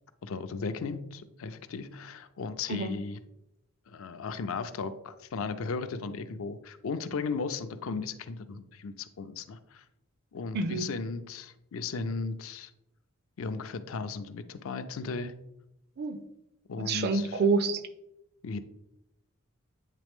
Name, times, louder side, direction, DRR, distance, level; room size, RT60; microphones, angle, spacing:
voice 1, 0.2-3.2 3.9-9.8 10.3-12.7 13.4-15.3 16.7-17.4 18.4-18.6, left 4 dB, 65° left, 10 dB, 0.4 m, -36 dB
voice 2, 10.5-10.9 16.0-16.2 16.8-17.8, right 4 dB, 45° right, 10 dB, 0.4 m, -27 dB
8.3 x 3.2 x 3.5 m, 0.86 s
head